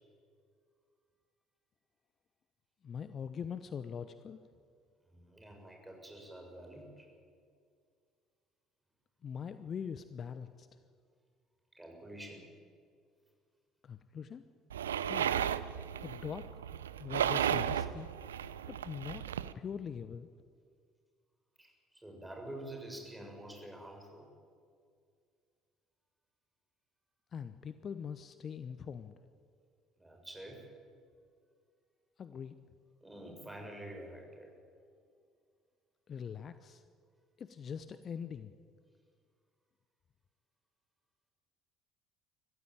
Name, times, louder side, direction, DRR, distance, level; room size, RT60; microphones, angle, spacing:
voice 1, 2.8-4.4 9.2-10.7 13.8-14.4 15.1-15.3 16.0-16.5 17.0-18.1 18.7-19.2 19.5-20.3 27.3-29.1 32.2-32.5 36.1-36.8 37.4-38.5, left 7 dB, 40° left, 12 dB, 0.8 m, -42 dB
voice 2, 5.1-7.1 11.7-12.5 21.6-24.3 30.0-30.7 33.0-34.5, right 1 dB, 10° right, 1 dB, 6.5 m, -48 dB
sound 1, 14.7-19.5, right 9 dB, 75° right, 0.6 m, -34 dB
24.0 x 15.0 x 9.2 m, 2.1 s
figure-of-eight pair, 55°, 0 cm